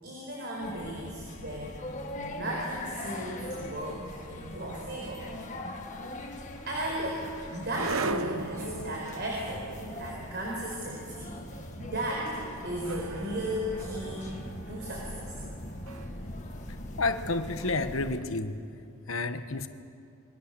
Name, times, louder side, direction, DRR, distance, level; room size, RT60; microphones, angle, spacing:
voice 1, 0.0-1.8 2.1-5.2 6.7-12.3 12.6-14.3 14.7-15.3 16.0-16.1, right 1 dB, 50° right, -2 dB, 4.7 m, -35 dB
sound 1, 0.6-18.2, left 1 dB, 35° left, 1.9 m, -41 dB
sound 2, 6.6-17.7, right 3 dB, 75° right, 0.8 m, -40 dB
voice 2, 17.0-18.6 19.1-19.7, left 3 dB, 70° left, 9 dB, 1.3 m, -30 dB
28.0 x 23.0 x 7.0 m, 2.4 s
head